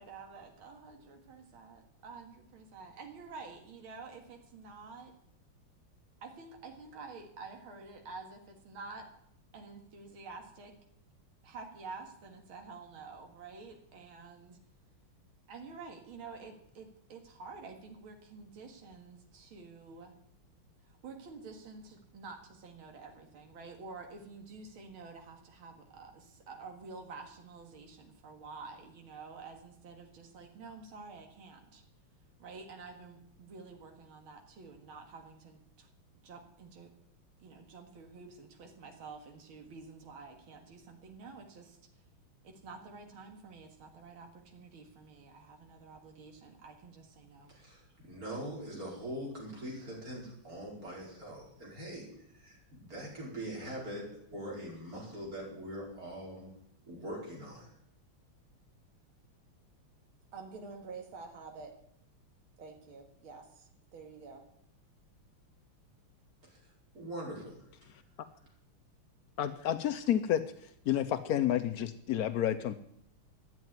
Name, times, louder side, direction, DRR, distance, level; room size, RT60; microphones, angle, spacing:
voice 1, 0.0-5.1 6.2-9.1 9.5-10.7 11.4-14.6 15.5-20.1 20.8-31.8 32.4-35.9 36.2-36.9 37.4-41.8 42.4-47.5 60.3-61.7 62.6-64.4, right 4 dB, 70° right, 3 dB, 2.7 m, -49 dB
voice 2, 47.5-52.1 52.3-56.5 56.9-57.7 66.5-66.6 66.9-67.5, equal, 40° right, -4 dB, 5.5 m, -42 dB
voice 3, 69.4-70.4 70.9-72.7, left 11 dB, 75° left, 12 dB, 0.8 m, -30 dB
13.5 x 9.3 x 9.5 m, 0.72 s
omnidirectional pair, 2.4 m